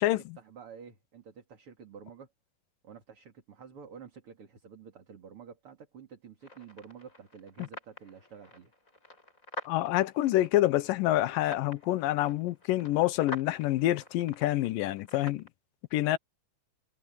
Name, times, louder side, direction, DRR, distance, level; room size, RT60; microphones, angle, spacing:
voice 1, 0.0-2.3 2.8-8.7, right 7 dB, 45° right, 3.3 m, -50 dB
sound 1, 6.4-15.5, left 2 dB, 20° left, 6.8 m, -47 dB
voice 2, 9.7-15.4 15.9-16.2, left 15 dB, 90° left, 2.6 m, -27 dB
omnidirectional pair, 3.8 m